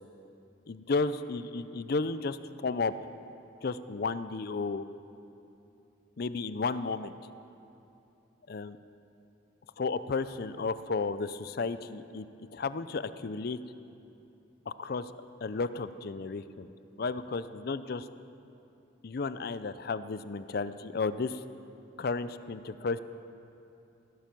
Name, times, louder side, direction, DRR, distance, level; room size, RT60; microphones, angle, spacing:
voice 1, 0.7-2.4 2.6-2.9 3.6-4.8 6.2-7.1 8.5-8.8 9.8-12.3 12.5-13.6 14.7-15.1 15.4-16.7 17.0-18.1 19.0-21.4 22.0-23.0, left 4 dB, 55° left, 13 dB, 0.5 m, -33 dB
17.0 x 11.5 x 6.0 m, 2.8 s
head